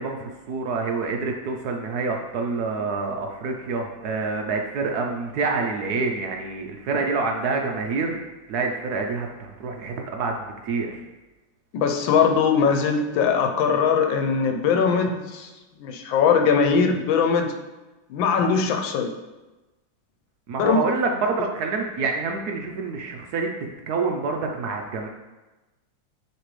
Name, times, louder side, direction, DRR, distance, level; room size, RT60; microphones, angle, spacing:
voice 1, 0.0-8.2 8.5-10.9 20.5-23.5 23.9-25.1, right 4 dB, 70° right, 2 dB, 1.0 m, -27 dB
voice 2, 11.7-15.5 15.8-17.5 18.1-19.1 20.6-20.8, left 6 dB, 85° left, 4 dB, 1.5 m, -21 dB
9.7 x 3.3 x 3.2 m, 1.1 s
omnidirectional pair, 2.1 m